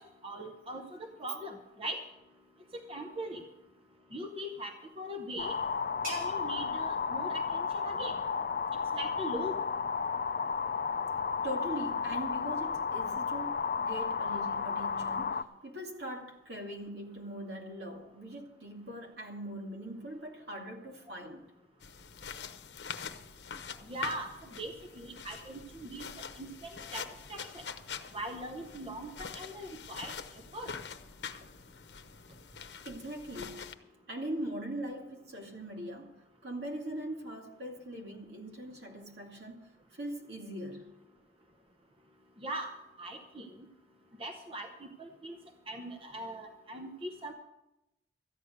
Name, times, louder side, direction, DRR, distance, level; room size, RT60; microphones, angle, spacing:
voice 1, 0.2-0.8 1.2-2.0 2.9-3.4 4.1-5.5 6.1-8.2 8.9-9.6 23.9-24.3 24.6-27.0 27.3-27.6 28.1-30.1 30.5-30.7 42.4-42.7 43.0-43.5 44.2-44.7 45.0-45.3 45.7-47.3, right 1 dB, 30° right, 4 dB, 0.9 m, -40 dB
sound 1, 4.7-10.1, equal, 55° right, 4.5 m, -51 dB
sound 2, 5.4-15.4, left 5 dB, 50° left, 0.5 m, -33 dB
voice 2, 11.4-21.4 32.8-33.7 34.1-41.0, right 1 dB, 75° right, 1 dB, 2.4 m, -41 dB
sound 3, 21.8-33.7, left 6 dB, 80° left, 0.9 m, -45 dB
13.5 x 9.8 x 6.5 m, 0.93 s
head